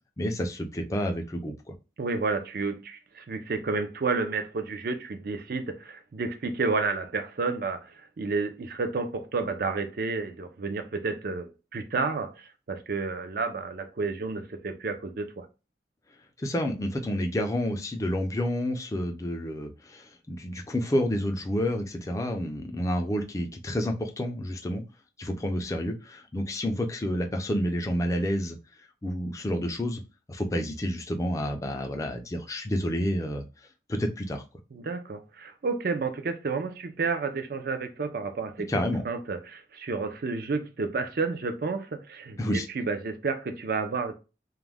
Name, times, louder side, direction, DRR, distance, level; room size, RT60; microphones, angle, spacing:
voice 1, 0.2-1.7 16.4-24.8 25.2-28.6 29.0-30.0 30.3-33.4 33.9-34.4 38.7-39.0 42.4-42.7, equal, 20° left, 0.4 m, -29 dB
voice 2, 2.0-15.5 34.7-38.7 39.0-44.1, right 4 dB, 55° right, 0.4 m, -31 dB
2.3 x 2.1 x 3.3 m
head